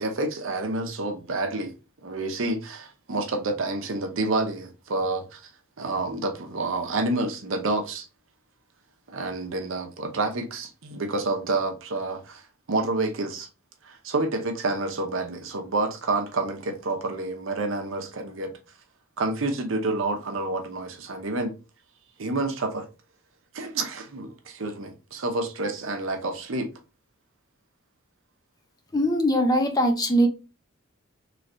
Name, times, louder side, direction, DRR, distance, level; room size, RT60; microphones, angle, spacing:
voice 1, 0.0-1.7 2.0-5.4 5.8-8.1 9.1-12.4 12.7-13.5 13.8-18.5 19.2-21.5 22.2-22.9 23.5-26.7, right 2 dB, 65° right, 0.7 m, -28 dB
voice 2, 28.9-30.3, equal, 20° left, 0.5 m, -21 dB
3.2 x 3.2 x 2.5 m
head